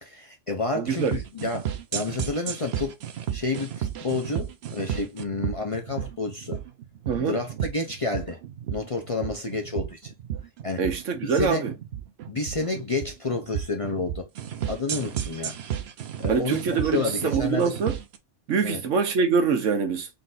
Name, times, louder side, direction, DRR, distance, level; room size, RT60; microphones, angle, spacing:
voice 1, 0.0-3.0 3.3-6.6 7.2-8.4 8.7-10.1 10.6-10.8 11.3-11.7 12.3-14.2 14.7-15.6 16.2-17.8 18.6-18.8, left 3 dB, 35° left, 0.5 m, -30 dB
voice 2, 0.8-1.1 7.1-7.3 10.8-11.7 16.3-17.9 18.5-20.1, right 5 dB, 80° right, 1.3 m, -24 dB
sound 1, 0.9-18.2, right 10 dB, 65° right, 0.8 m, -33 dB
3.9 x 2.5 x 3.9 m
omnidirectional pair, 1.3 m